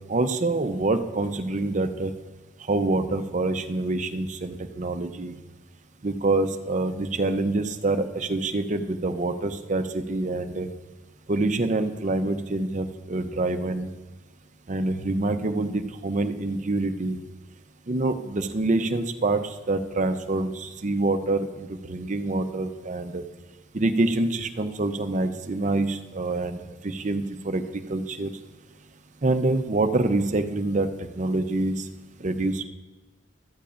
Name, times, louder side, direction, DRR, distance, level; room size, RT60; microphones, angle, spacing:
voice 1, 0.0-2.1 2.7-5.4 6.0-10.7 11.3-13.9 14.7-17.2 17.9-23.2 23.7-26.6 26.8-28.3 29.2-30.9 31.1-31.9 32.2-32.6, right 2 dB, 40° right, 9 dB, 0.6 m, -26 dB
15.5 x 13.0 x 2.5 m, 1.2 s
head